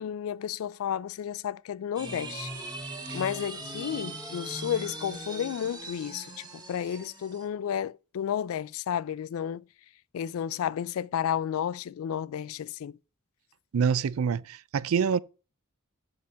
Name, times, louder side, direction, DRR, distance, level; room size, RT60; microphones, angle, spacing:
voice 1, 0.0-2.5 3.1-9.7 10.1-13.0, left 9 dB, 70° left, 0.3 m, -32 dB
sound 1, 2.0-7.5, right 2 dB, 20° right, 1.5 m, -40 dB
voice 2, 13.7-15.2, right 6 dB, 70° right, 0.4 m, -26 dB
7.5 x 5.8 x 5.6 m
head